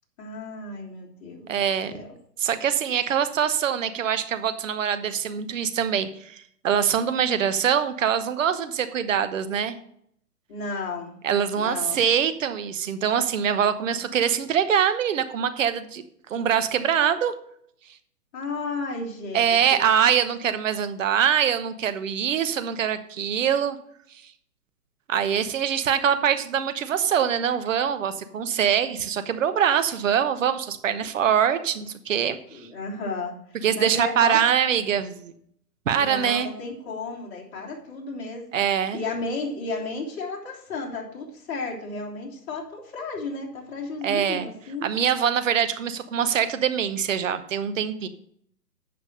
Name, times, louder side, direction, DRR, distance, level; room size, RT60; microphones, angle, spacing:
voice 1, 0.2-1.5 1.9-2.1 3.0-3.1 10.5-11.1 11.5-12.1 18.3-19.6 32.5-34.4 35.9-44.9, left 3 dB, 40° left, -3 dB, 3.1 m, -33 dB
voice 2, 1.5-2.0 2.4-9.8 11.2-16.0 16.3-17.3 19.3-23.8 25.1-32.4 33.6-35.3 35.9-36.5 38.5-39.0 44.0-44.5 44.8-48.1, right 8 dB, 50° right, 11 dB, 1.1 m, -24 dB
8.6 x 5.8 x 6.7 m, 0.67 s
figure-of-eight pair, 135°, 48 cm